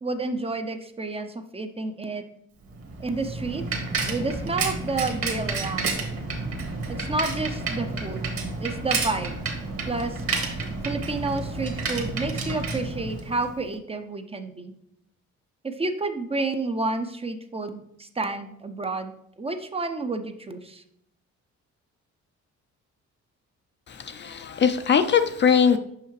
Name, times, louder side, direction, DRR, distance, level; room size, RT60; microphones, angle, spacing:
voice 1, 0.0-2.2 3.0-3.6 4.1-6.0 6.9-8.3 8.6-9.4 9.9-10.2 10.8-14.7 15.6-19.1 19.4-20.8, right 3 dB, 20° right, 8 dB, 0.5 m, -30 dB
Bicycle, 2.7-13.6, right 3 dB, 50° right, 1.4 m, -30 dB
voice 2, 23.9-25.8, left 7 dB, 40° left, 9 dB, 0.4 m, -21 dB
5.7 x 5.4 x 3.2 m, 0.73 s
cardioid pair, 90°, 30 cm